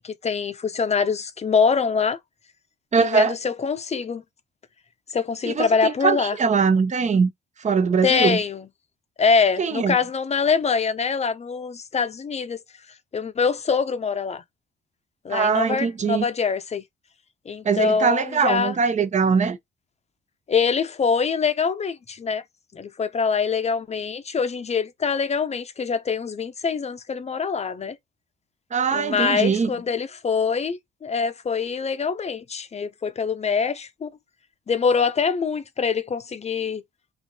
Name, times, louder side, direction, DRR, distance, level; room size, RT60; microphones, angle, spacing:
voice 1, 0.0-2.2 3.0-4.2 5.1-6.4 8.0-8.6 9.2-12.6 13.1-14.4 15.2-16.8 17.5-18.8 20.5-22.4 22.7-28.0 28.9-34.1 34.7-36.8, left 5 dB, 35° left, 0.7 m, -24 dB
voice 2, 2.9-3.3 5.5-7.3 7.6-8.4 9.6-10.0 15.3-16.3 17.6-19.6 28.7-29.7, right 5 dB, 35° right, 0.8 m, -21 dB
4.3 x 2.8 x 2.8 m
cardioid pair, 90°, 20 cm